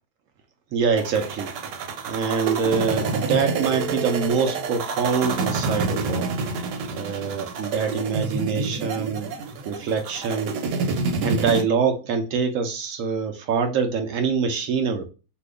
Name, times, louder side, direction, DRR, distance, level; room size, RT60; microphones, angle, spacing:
voice 1, 0.7-1.5 2.0-6.3 6.9-9.3 9.7-10.6 11.2-15.1, right 5 dB, 70° right, 0.8 m, -24 dB
sound 1, 1.0-11.6, right 4 dB, 90° right, 1.3 m, -28 dB
2.7 x 2.4 x 3.4 m
omnidirectional pair, 1.8 m